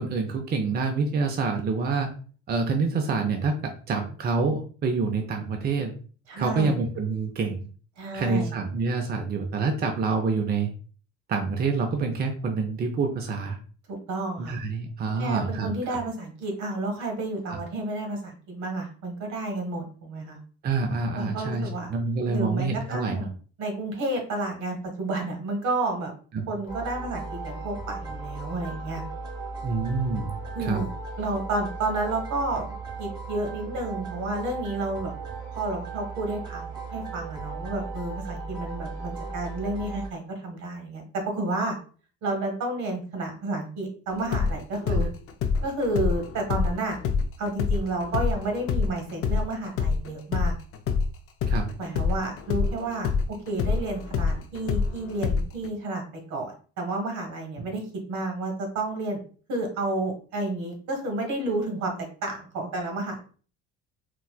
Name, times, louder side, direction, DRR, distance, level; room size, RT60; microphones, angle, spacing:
voice 1, 0.0-2.1 2.5-5.9 6.4-7.6 8.1-10.7 11.3-13.6 14.4-16.0 20.6-23.2 26.3-26.5 29.6-30.8 44.9-45.1 51.5-51.7, right 4 dB, 35° right, 3 dB, 0.5 m, -27 dB
voice 2, 6.3-6.8 8.0-8.5 13.9-14.6 15.2-20.4 21.1-21.9 22.2-23.3 23.6-26.1 26.5-29.0 30.5-30.9 31.2-32.7 33.0-35.1 35.5-41.8 42.2-45.1 45.6-47.0 47.4-50.5 51.8-59.2 59.5-63.2, right 2 dB, 75° right, 3 dB, 1.2 m, -31 dB
sound 1, 26.7-40.1, right 3 dB, 15° right, 1.1 m, -36 dB
sound 2, 44.1-51.1 51.4-55.7, left 5 dB, 50° left, 0.4 m, -26 dB
4.1 x 2.2 x 2.3 m, 0.40 s
cardioid pair, 115°, 29 cm